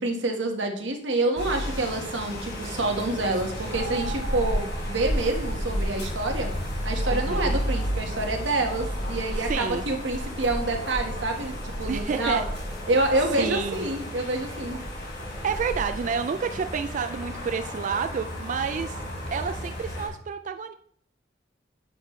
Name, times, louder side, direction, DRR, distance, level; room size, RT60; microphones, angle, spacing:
voice 1, 0.0-6.5 6.8-12.4 12.9-14.8, right 2 dB, 85° right, 3 dB, 1.4 m, -27 dB
sound 1, 1.4-20.1, equal, 65° left, 3.3 m, -32 dB
voice 2, 7.1-7.6 9.4-9.8 11.9-12.4 13.4-13.9 15.4-19.0 19.3-20.7, right 6 dB, 45° right, 9 dB, 0.3 m, -29 dB
9.4 x 6.1 x 3.1 m, 0.64 s
head